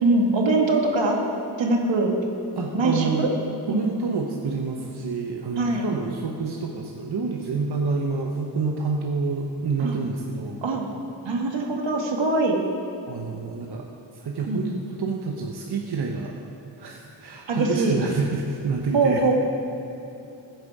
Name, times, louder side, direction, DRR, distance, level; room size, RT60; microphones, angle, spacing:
voice 1, 0.0-1.2 1.6-2.2 2.7-3.3 3.7-3.9 5.6-5.9 9.8-10.0 10.6-10.9 11.2-12.6 14.5-14.6 17.5-18.0 18.9-19.3, right 2 dB, 80° right, 1 dB, 1.9 m, -22 dB
voice 2, 2.5-3.3 3.7-10.6 13.1-13.9 14.1-16.4 16.8-19.2, right 4 dB, 60° right, 0 dB, 1.1 m, -28 dB
15.5 x 9.3 x 4.9 m, 2.9 s
wide cardioid pair, 100°, 44 cm